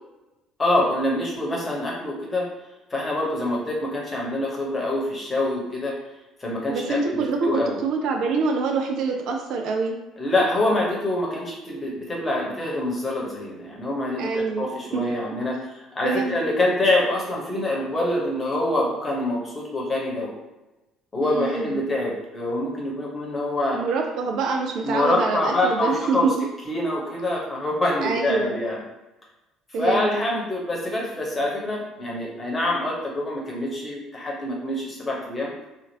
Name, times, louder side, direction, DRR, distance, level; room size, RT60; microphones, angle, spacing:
voice 1, 0.6-2.5 2.9-6.0 6.4-7.8 10.2-20.3 21.1-23.8 24.8-26.3 26.7-28.8 29.8-35.5, left 1 dB, 25° left, -3 dB, 1.0 m, -25 dB
voice 2, 6.7-10.0 14.2-15.0 16.0-16.3 21.2-21.8 23.7-26.5 28.0-28.6 29.7-30.1, right 4 dB, 60° right, 3 dB, 0.4 m, -25 dB
2.8 x 2.4 x 2.8 m, 1.0 s
figure-of-eight pair, 50°, 0 cm